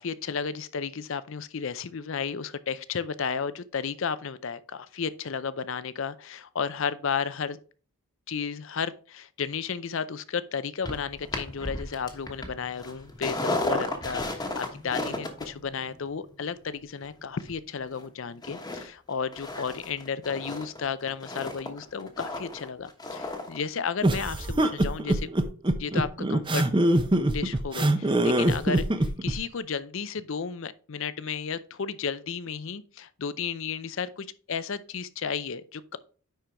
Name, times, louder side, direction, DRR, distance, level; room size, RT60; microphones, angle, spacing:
voice 1, 0.0-7.6 8.3-25.3 25.8-26.6 27.3-28.9 29.2-36.0, left 6 dB, 60° left, 0.5 m, -33 dB
sound 1, 10.8-18.0 18.4-18.8 19.1-23.6 23.9-24.0, left 2 dB, 15° left, 1.1 m, -34 dB
sound 2, 24.0-29.4, right 1 dB, 20° right, 0.6 m, -23 dB
10.0 x 4.5 x 3.4 m
head